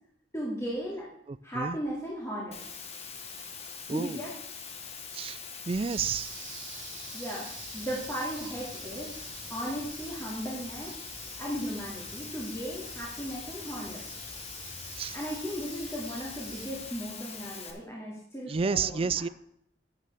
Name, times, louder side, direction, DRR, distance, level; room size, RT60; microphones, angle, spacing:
voice 1, 0.3-1.1 1.4-2.6 3.9-4.4 7.1-7.5 7.7-11.0 11.4-14.0 15.1-19.2, equal, 15° left, -6 dB, 2.3 m, -36 dB
voice 2, 1.3-1.8 3.9-4.2 5.1-5.4 5.7-6.3 15.0-15.2 18.5-19.3, right 5 dB, 30° right, 18 dB, 0.3 m, -30 dB
Water, 2.5-17.7, left 6 dB, 35° left, 1.2 m, -43 dB
sound 1, 5.9-16.7, right 6 dB, 85° right, 2.0 m, -48 dB
sound 2, 7.5-17.0, right 1 dB, ahead, 2.0 m, -54 dB
12.5 x 8.9 x 3.5 m, 0.73 s
head